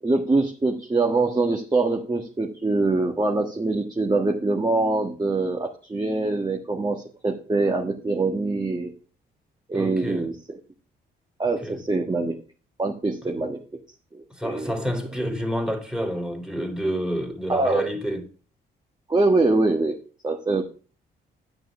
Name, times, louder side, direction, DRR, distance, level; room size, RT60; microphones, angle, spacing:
voice 1, 0.0-8.9 9.7-10.3 11.4-12.4 12.8-13.6 14.1-14.7 17.5-17.9 19.1-19.9 20.2-20.6, right 3 dB, 20° right, 1.5 m, -24 dB
voice 2, 9.7-10.3 11.6-11.8 13.2-13.3 14.3-18.3, equal, 5° right, 2.8 m, -29 dB
9.2 x 6.2 x 6.0 m
cardioid pair, 70°, 20 cm